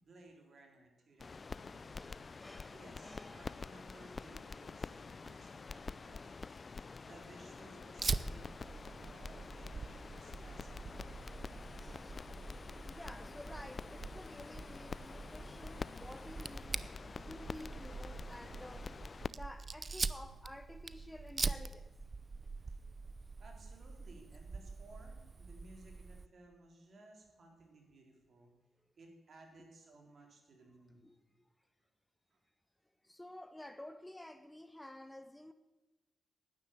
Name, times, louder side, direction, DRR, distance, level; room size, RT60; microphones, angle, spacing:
voice 1, 0.0-2.2 2.7-6.3 7.0-11.2 22.6-22.7 23.4-28.5 29.0-31.0 32.3-32.4, right 2 dB, 55° right, 3.7 m, -59 dB
sound 1, 1.2-19.3, left 4 dB, 40° left, 0.4 m, -47 dB
voice 2, 1.9-3.6 5.4-5.5 6.5-6.9 11.8-12.2 12.9-16.8 17.3-18.9 19.3-21.9 31.0-31.2 33.0-35.5, left 1 dB, 10° left, 0.8 m, -52 dB
Fire, 8.0-26.3, right 4 dB, 40° right, 0.6 m, -44 dB
10.5 x 9.8 x 8.3 m
supercardioid pair, 55°, 0 cm